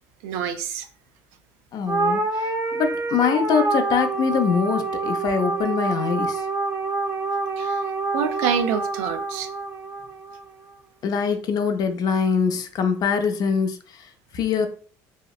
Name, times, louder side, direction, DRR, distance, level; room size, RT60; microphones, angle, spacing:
voice 1, 0.2-0.9 7.6-7.9 8.1-9.5, right 7 dB, 85° right, 8 dB, 0.4 m, -26 dB
voice 2, 1.7-6.5 11.0-14.7, left 6 dB, 50° left, 7 dB, 0.4 m, -24 dB
sound 1, 1.9-10.4, right 3 dB, 30° right, 0.5 m, -26 dB
2.8 x 2.0 x 2.3 m, 0.42 s
supercardioid pair, 90°, 8 cm